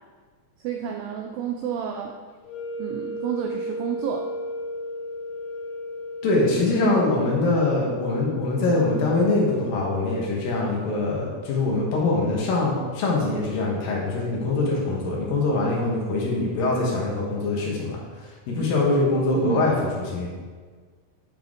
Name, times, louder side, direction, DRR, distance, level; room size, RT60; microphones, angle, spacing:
voice 1, 0.6-2.2 2.8-4.3 6.8-7.0 19.3-19.7, right 9 dB, 85° right, 2 dB, 2.0 m, -30 dB
sound 1, 2.4-10.6, left 1 dB, 85° left, 2.9 m, -35 dB
voice 2, 6.2-20.3, left 2 dB, 65° left, -3 dB, 2.9 m, -23 dB
9.1 x 5.7 x 3.8 m, 1.5 s
omnidirectional pair, 4.7 m